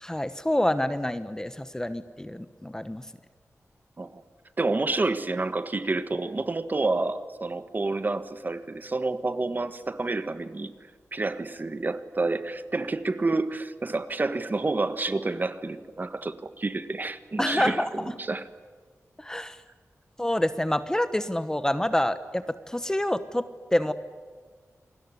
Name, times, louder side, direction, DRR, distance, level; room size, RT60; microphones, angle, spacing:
voice 1, 0.0-3.1 17.4-18.1 19.2-19.6 20.2-23.4 23.7-23.9, left 1 dB, 10° left, 12 dB, 1.0 m, -27 dB
voice 2, 4.6-10.7 11.1-18.5, right 3 dB, 35° right, 11 dB, 1.5 m, -29 dB
28.0 x 20.5 x 9.7 m, 1.5 s
wide cardioid pair, 120°, 5 cm